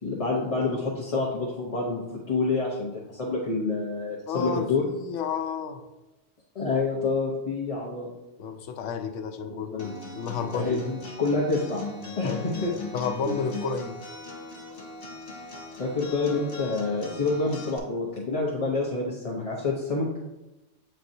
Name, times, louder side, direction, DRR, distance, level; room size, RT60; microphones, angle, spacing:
voice 1, 0.0-4.8 6.5-8.1 9.5-9.9 10.5-11.8 12.2-12.7 15.8-20.1, left 3 dB, 35° left, -4 dB, 0.8 m, -28 dB
voice 2, 4.3-5.8 8.4-10.8 12.2-12.4 12.9-14.0, left 5 dB, 85° left, 6 dB, 1.0 m, -31 dB
Acoustic guitar, 9.8-17.8, left 3 dB, 50° left, 1.3 m, -40 dB
8.4 x 4.4 x 2.7 m, 1.0 s
omnidirectional pair, 1.2 m